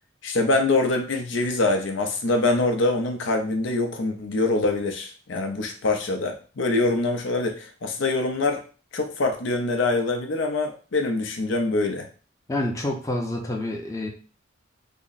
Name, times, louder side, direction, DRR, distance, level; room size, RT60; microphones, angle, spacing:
voice 1, 0.2-8.6 8.9-12.1, left 2 dB, 70° left, 4 dB, 0.6 m, -24 dB
voice 2, 12.5-14.1, left 1 dB, 15° left, 0 dB, 0.6 m, -28 dB
3.4 x 2.1 x 3.9 m, 0.37 s
head